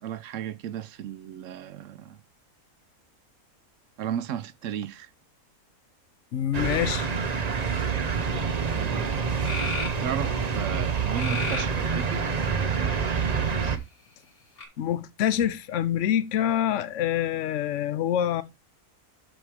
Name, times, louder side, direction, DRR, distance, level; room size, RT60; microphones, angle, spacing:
voice 1, 0.0-2.2 4.0-5.1 8.7-9.3 9.8-12.3, right 10 dB, 65° right, 0.9 m, -35 dB
voice 2, 6.3-7.1 14.8-18.4, left 10 dB, 60° left, 1.0 m, -26 dB
sound 1, 6.5-13.8, right 6 dB, 35° right, 0.7 m, -27 dB
sound 2, 8.8-8.9 9.4-10.0 11.1-11.8 12.6-13.3 14.6-14.7, left 2 dB, 80° left, 2.7 m, -33 dB
13.0 x 4.4 x 3.4 m
omnidirectional pair, 1.5 m